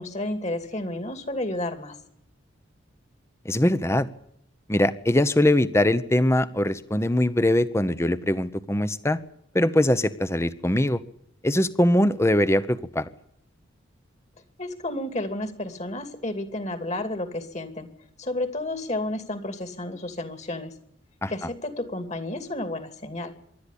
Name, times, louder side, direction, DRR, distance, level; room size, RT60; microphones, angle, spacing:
voice 1, 0.0-2.0 14.6-17.9 18.2-20.7 21.3-23.3, left 1 dB, 35° left, 8 dB, 2.6 m, -31 dB
voice 2, 3.4-4.1 4.7-9.2 9.5-11.0 11.4-13.0 21.2-21.3, left 1 dB, 15° left, 14 dB, 0.9 m, -22 dB
25.0 x 12.5 x 9.9 m, 0.73 s
head